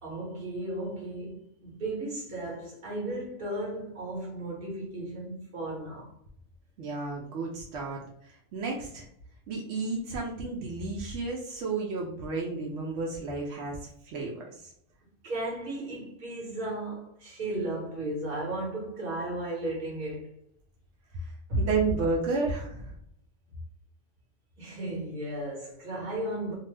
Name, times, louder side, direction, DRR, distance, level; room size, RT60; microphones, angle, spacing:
voice 1, 0.0-6.1 15.2-20.3 21.5-21.7 24.6-26.5, right 1 dB, 50° right, 1.3 m, -34 dB
voice 2, 6.8-9.1 9.5-13.8 14.0-14.7 21.2-22.9, right 4 dB, 70° right, 0.9 m, -32 dB
2.8 x 2.1 x 3.2 m
omnidirectional pair, 1.3 m